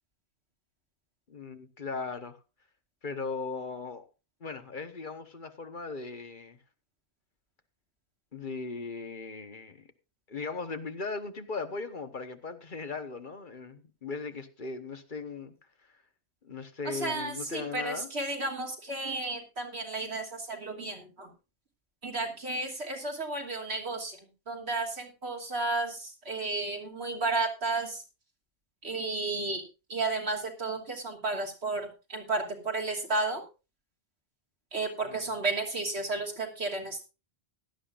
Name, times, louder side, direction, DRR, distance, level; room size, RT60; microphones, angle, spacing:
voice 1, 1.3-2.4 3.0-4.0 4.4-6.6 8.3-9.8 10.3-15.5 16.4-18.1 35.1-35.3, left 4 dB, 50° left, 9 dB, 1.3 m, -38 dB
voice 2, 16.8-21.3 22.0-24.2 24.5-28.0 28.8-29.6 29.9-33.4 34.7-37.0, right 3 dB, 75° right, 1 dB, 3.1 m, -33 dB
17.0 x 12.0 x 2.5 m, 0.29 s
omnidirectional pair, 1.1 m